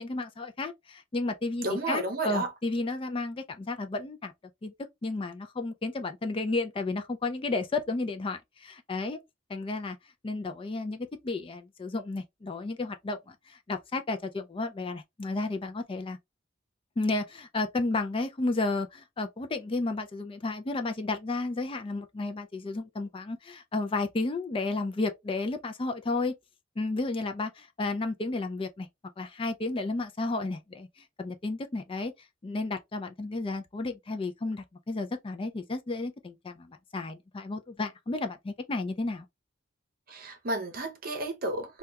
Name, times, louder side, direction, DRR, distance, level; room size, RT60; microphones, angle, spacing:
voice 1, 0.0-4.3 4.6-4.7 5.0-9.2 9.5-10.0 10.2-16.2 17.0-26.3 26.8-28.9 29.2-32.1 32.4-39.3, left 3 dB, 25° left, 0.4 m, -32 dB
voice 2, 1.6-2.5 40.1-41.8, right 2 dB, 45° right, 0.7 m, -32 dB
3.4 x 2.3 x 2.7 m
head